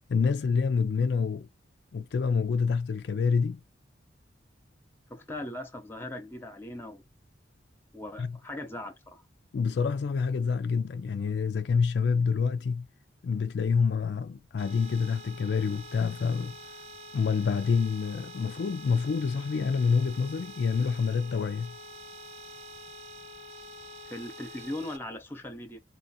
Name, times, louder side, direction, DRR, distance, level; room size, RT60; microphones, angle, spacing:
voice 1, 0.0-1.5 1.9-3.6 8.2-8.4 9.5-12.9 13.2-16.6 17.1-21.8, left 5 dB, 60° left, 0.3 m, -27 dB
voice 2, 5.1-7.0 7.9-9.2 24.1-25.8, left 1 dB, 10° left, 0.8 m, -39 dB
sound 1, 14.6-25.0, equal, 35° right, 0.7 m, -46 dB
4.2 x 2.5 x 4.1 m
head